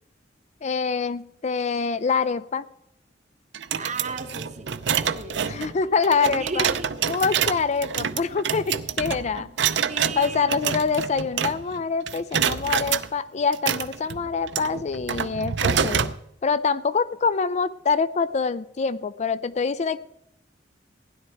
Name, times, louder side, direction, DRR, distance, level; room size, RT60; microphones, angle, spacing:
voice 1, 0.6-2.6 5.4-6.7 7.1-9.5 10.2-16.1 16.4-20.0, left 5 dB, 40° left, 16 dB, 0.4 m, -25 dB
sound 1, 3.5-11.8 12.1-13.1 13.5-16.2, right 7 dB, 70° right, 0.6 m, -27 dB
voice 2, 3.8-4.7 4.9-5.7 6.2-6.9 9.9-10.7, right 3 dB, 40° right, 8 dB, 1.1 m, -35 dB
sound 2, 4.1-8.8, left 3 dB, 55° left, 1.9 m, -50 dB
16.0 x 10.5 x 4.5 m, 0.78 s
head